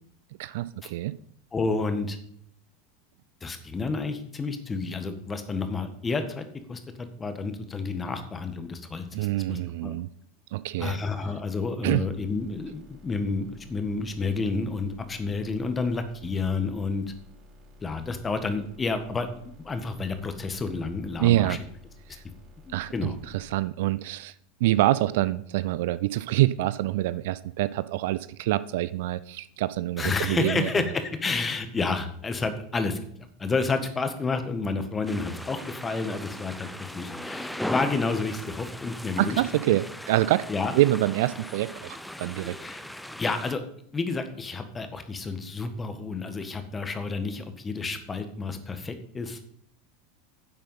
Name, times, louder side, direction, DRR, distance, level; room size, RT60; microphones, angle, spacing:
voice 1, 0.4-1.2 9.1-10.1 10.5-11.0 11.8-12.1 21.2-21.6 22.1-22.2 22.7-24.3 24.6-30.7 39.2-40.4 40.7-42.6, right 16 dB, 60° right, 17 dB, 0.4 m, -26 dB
voice 2, 1.5-2.2 3.4-9.9 10.8-17.0 17.8-19.3 19.6-21.6 22.7-23.2 30.0-33.0 33.4-39.4 39.7-39.8 40.5-40.7 42.6-42.8 43.2-43.6 43.9-49.5, left 4 dB, 20° left, 9 dB, 1.7 m, -30 dB
sound 1, 12.0-23.5, left 2 dB, 40° right, 4.9 m, -52 dB
sound 2, 35.1-43.6, left 1 dB, ahead, 0.7 m, -38 dB
10.5 x 7.5 x 5.6 m, 0.67 s
figure-of-eight pair, 80°, 0 cm